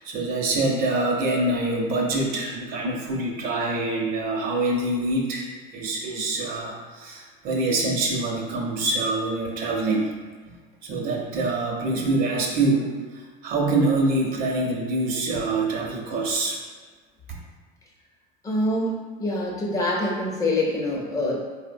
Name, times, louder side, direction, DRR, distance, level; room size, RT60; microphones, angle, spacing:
voice 1, 0.0-10.1 10.8-16.6, right 2 dB, 55° right, 0 dB, 0.7 m, -25 dB
voice 2, 18.4-18.9 19.2-21.4, left 1 dB, 20° left, -2 dB, 0.6 m, -25 dB
4.2 x 2.1 x 2.6 m, 1.4 s
cardioid pair, 135°, 18 cm